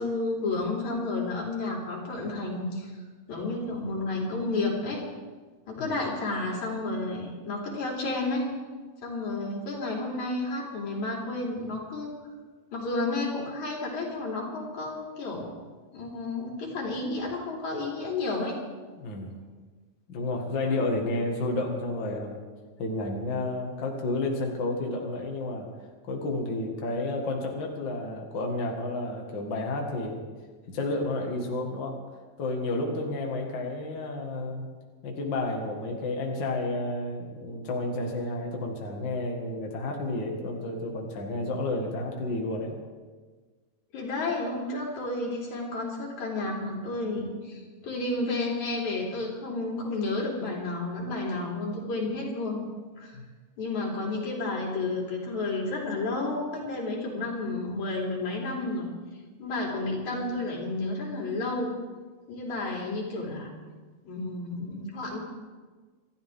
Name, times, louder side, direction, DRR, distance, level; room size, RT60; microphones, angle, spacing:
voice 1, 0.0-2.9 3.3-5.0 5.7-8.5 9.0-12.1 12.7-15.5 15.9-18.5 43.9-52.7 53.0-53.2 53.6-58.9 59.4-61.8 62.3-63.5 64.0-65.2, left 2 dB, 80° left, -3 dB, 4.6 m, -31 dB
voice 2, 19.0-19.4 20.1-22.4 22.8-25.7 26.1-30.2 30.7-32.1 32.4-34.8 35.0-42.8 53.1-53.3, left 2 dB, 45° left, 0 dB, 2.3 m, -31 dB
26.5 x 13.0 x 3.7 m, 1.4 s
omnidirectional pair, 3.3 m